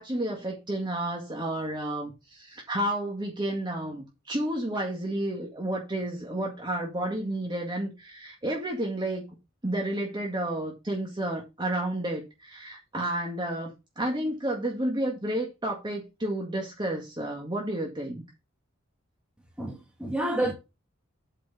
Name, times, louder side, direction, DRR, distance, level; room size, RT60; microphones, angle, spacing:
voice 1, 0.0-9.3 9.6-18.2, right 1 dB, 25° right, 1.9 m, -31 dB
voice 2, 19.6-20.5, right 1 dB, 5° right, 2.5 m, -29 dB
8.2 x 5.0 x 5.6 m
head